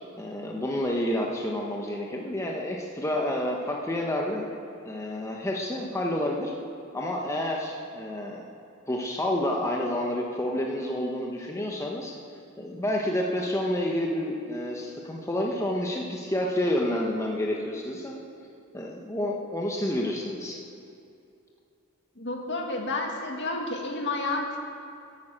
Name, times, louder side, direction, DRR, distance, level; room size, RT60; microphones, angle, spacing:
voice 1, 0.2-4.5 4.8-6.5 6.9-8.4 8.9-12.1 12.6-18.2 18.7-20.6, left 1 dB, 15° left, -1 dB, 1.1 m, -29 dB
voice 2, 22.2-24.6, left 2 dB, 55° left, 1 dB, 1.8 m, -30 dB
11.5 x 11.5 x 7.4 m, 2.6 s
head